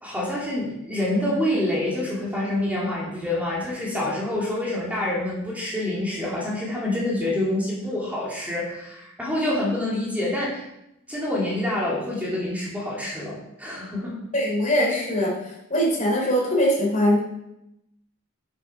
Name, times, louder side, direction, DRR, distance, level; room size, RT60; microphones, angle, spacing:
voice 1, 0.0-10.6 11.1-14.2, left 1 dB, 5° right, -6 dB, 2.7 m, -27 dB
voice 2, 14.3-15.3 15.7-17.2, equal, 35° left, -2 dB, 3.4 m, -21 dB
8.4 x 8.0 x 5.6 m, 0.84 s
head